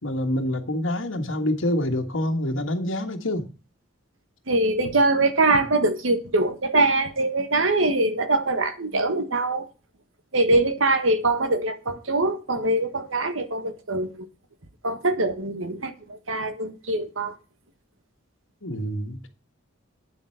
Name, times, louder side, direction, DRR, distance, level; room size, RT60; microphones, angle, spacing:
voice 1, 0.0-3.4 18.6-19.3, left 1 dB, 75° left, 1.6 m, -26 dB
voice 2, 4.5-9.6 10.3-14.2 14.8-17.3, right 2 dB, 85° right, 1.6 m, -23 dB
9.6 x 7.9 x 5.8 m
head